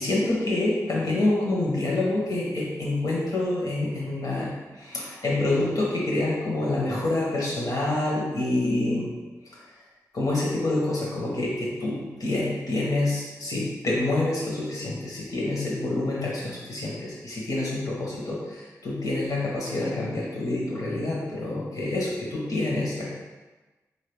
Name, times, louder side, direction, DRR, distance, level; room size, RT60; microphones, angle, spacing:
voice 1, 0.0-9.1 10.1-23.1, left 2 dB, 70° left, -4 dB, 1.2 m, -27 dB
4.0 x 2.8 x 3.4 m, 1.2 s
cardioid pair, 50°, 6 cm